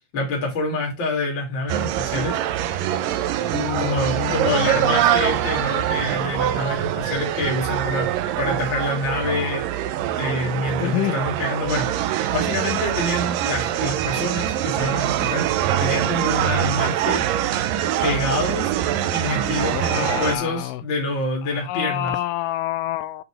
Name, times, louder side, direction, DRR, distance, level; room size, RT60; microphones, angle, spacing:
voice 1, 0.1-2.4 3.8-9.7 10.1-17.3 18.0-18.7 19.1-22.1, left 2 dB, 35° left, 3.2 m, -26 dB
sound 1, 1.7-20.3, right 11 dB, 85° right, 2.4 m, -24 dB
voice 2, 3.5-4.6 10.8-11.2 19.7-20.8 21.4-23.2, left 15 dB, 80° left, 2.1 m, -28 dB
8.3 x 4.9 x 4.8 m
omnidirectional pair, 4.0 m